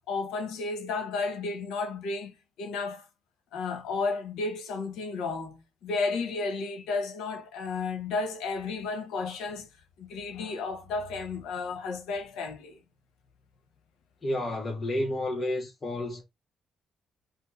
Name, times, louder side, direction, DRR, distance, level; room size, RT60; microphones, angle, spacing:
voice 1, 0.0-3.0 3.5-9.7 10.0-12.8, left 4 dB, 90° left, 0.9 m, -33 dB
voice 2, 14.2-16.2, left 1 dB, 30° left, 1.1 m, -30 dB
2.9 x 2.8 x 3.8 m
cardioid pair, 90°, 0 cm